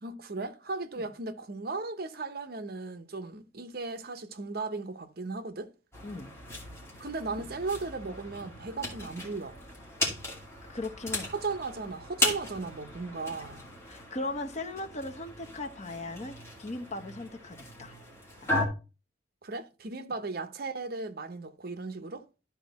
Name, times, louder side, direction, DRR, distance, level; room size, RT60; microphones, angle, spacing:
voice 1, 0.0-5.7 7.0-9.6 11.3-13.7 19.4-22.2, right 3 dB, 55° right, 0.8 m, -36 dB
sound 1, 5.9-18.6, left 2 dB, 15° left, 2.4 m, -37 dB
voice 2, 10.7-11.3 13.9-18.0 18.4-18.7, left 2 dB, 40° left, 0.9 m, -38 dB
12.5 x 4.3 x 4.1 m
head